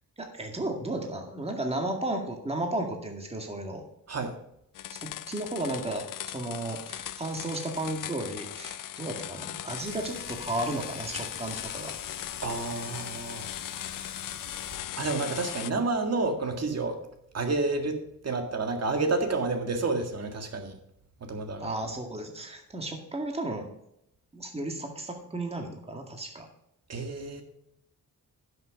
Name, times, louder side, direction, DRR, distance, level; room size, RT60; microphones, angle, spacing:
voice 1, 0.2-3.9 4.9-6.0 6.3-11.9 21.6-23.7 24.3-26.5, right 1 dB, 15° right, 3 dB, 2.0 m, -34 dB
sound 1, 4.7-15.7, left 12 dB, 65° left, 0.5 m, -38 dB
sound 2, 9.8-14.8, right 2 dB, 75° right, 3.7 m, -49 dB
voice 2, 12.4-13.5 15.0-17.0 17.3-20.7 21.2-21.7 26.9-27.4, right 3 dB, 45° right, 6 dB, 1.9 m, -30 dB
11.0 x 6.6 x 4.9 m, 0.79 s
wide cardioid pair, 115°, 34 cm